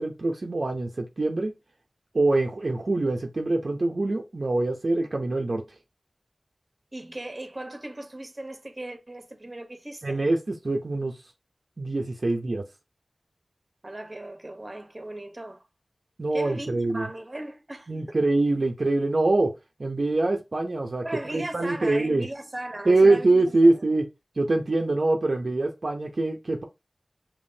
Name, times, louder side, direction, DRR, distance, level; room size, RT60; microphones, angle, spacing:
voice 1, 0.0-1.5 2.1-5.6 10.0-11.2 11.8-12.6 16.2-17.1 17.9-19.5 19.8-22.3 22.9-24.1 24.4-26.6, right 2 dB, 60° right, 0.7 m, -24 dB
voice 2, 6.9-10.2 13.8-15.6 16.3-18.2 21.0-23.8, right 1 dB, 35° right, 0.9 m, -38 dB
5.2 x 3.0 x 2.7 m
wide cardioid pair, 45°, 0 cm